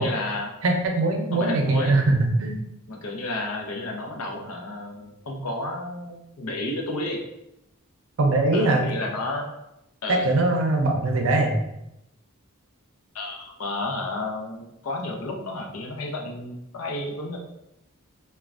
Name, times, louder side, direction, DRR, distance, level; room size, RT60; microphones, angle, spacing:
voice 1, 0.0-0.5 1.3-2.0 2.9-7.2 8.5-9.5 10.0-10.3 13.1-17.4, left 2 dB, 85° left, 1 dB, 0.6 m, -31 dB
voice 2, 0.6-2.6 8.2-8.8 10.2-11.6, right 2 dB, 65° right, 2 dB, 0.5 m, -21 dB
3.1 x 2.2 x 2.4 m, 0.86 s
head